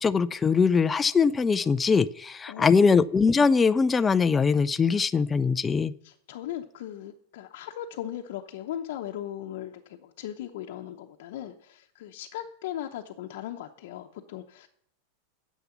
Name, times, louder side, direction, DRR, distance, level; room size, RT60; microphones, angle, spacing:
voice 1, 0.0-5.9, left 5 dB, 15° left, 0.3 m, -22 dB
voice 2, 6.0-14.7, left 11 dB, 65° left, 0.8 m, -38 dB
9.6 x 7.3 x 7.1 m
supercardioid pair, 150°, 0 cm